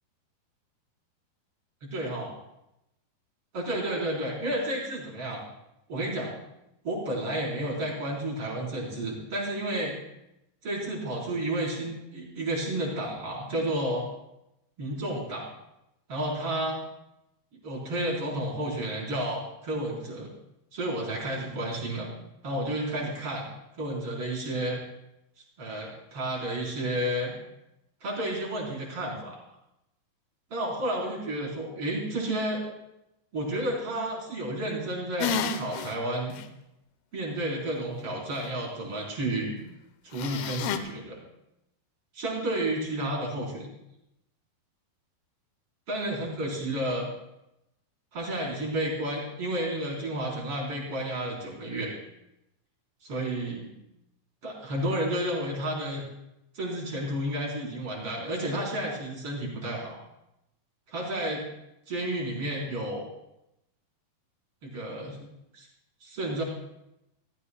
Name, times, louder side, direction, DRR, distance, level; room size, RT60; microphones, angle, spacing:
voice 1, 1.8-2.3 3.5-5.4 5.9-6.3 6.8-9.9 10.6-14.1 14.8-15.5 16.1-16.8 17.6-20.3 20.7-22.1 22.4-23.5 23.8-24.8 25.6-27.4 28.0-29.3 30.5-32.6 33.3-36.3 37.1-39.6 40.0-41.2 42.1-43.7 45.9-47.1 48.1-52.0 53.0-53.7 54.4-56.0 56.5-59.9 60.9-61.4 61.9-63.1 64.6-65.2 65.5-65.7 66.0-66.4, right 1 dB, 35° right, -3 dB, 4.5 m, -31 dB
sound 1, 35.2-35.9 36.4-36.5 40.2-40.8, left 7 dB, 80° left, 2.7 m, -30 dB
26.5 x 14.5 x 2.2 m, 0.86 s
omnidirectional pair, 4.6 m